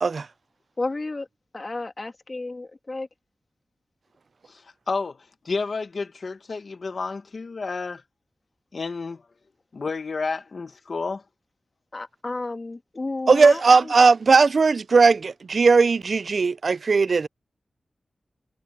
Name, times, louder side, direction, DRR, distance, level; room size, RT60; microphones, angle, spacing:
voice 1, 0.8-1.3 1.5-3.1 11.9-13.9, left 2 dB, 35° left, 2.4 m, -32 dB
voice 2, 4.5-5.2 5.4-8.0 8.7-9.2 9.7-11.2, left 4 dB, 60° left, 1.2 m, -30 dB
voice 3, 13.3-17.3, right 4 dB, 60° right, 0.3 m, -18 dB
wide cardioid pair, 100°, 0 cm